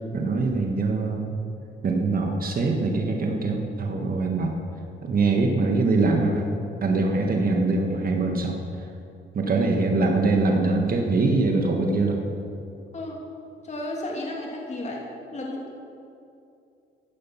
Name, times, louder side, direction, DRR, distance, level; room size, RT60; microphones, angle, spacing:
voice 1, 0.1-1.3 1.8-4.6 5.0-6.5 6.8-8.6 9.3-12.2, right 3 dB, 45° right, 2 dB, 1.8 m, -23 dB
voice 2, 13.6-15.0 15.3-15.7, left 1 dB, 35° left, -1 dB, 2.7 m, -33 dB
16.0 x 12.0 x 5.9 m, 2.6 s
cardioid pair, 90°, 20 cm